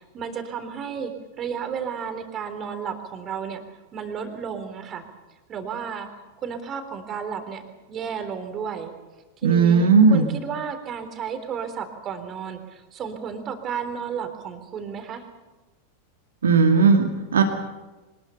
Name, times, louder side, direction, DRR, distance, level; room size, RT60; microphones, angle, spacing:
voice 1, 0.0-3.6 3.9-5.0 5.5-6.1 6.4-7.6 7.9-8.9 9.4-15.2, right 7 dB, 30° right, 7 dB, 3.6 m, -32 dB
voice 2, 9.4-10.3 16.4-17.4, right 5 dB, 65° right, 5 dB, 2.1 m, -16 dB
25.0 x 20.0 x 6.9 m, 1.2 s
figure-of-eight pair, 90°, 0 cm